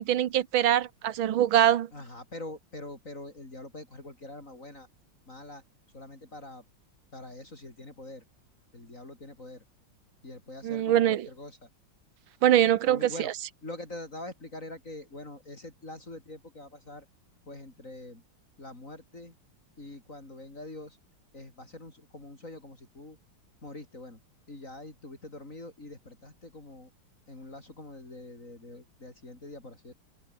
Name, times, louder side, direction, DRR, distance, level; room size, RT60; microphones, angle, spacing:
voice 1, 0.0-1.9 10.6-11.3 12.4-13.3, right 11 dB, 70° right, 1.8 m, -23 dB
voice 2, 1.9-4.9 5.3-5.6 5.9-6.6 7.1-8.2 8.7-9.6 10.2-11.7 12.9-13.3 13.6-17.0 17.5-18.2 18.6-19.3 19.8-21.0 21.3-23.2 23.6-24.2 24.5-26.9 27.3-29.9, left 2 dB, 35° left, 5.2 m, -44 dB
open air
omnidirectional pair, 2.3 m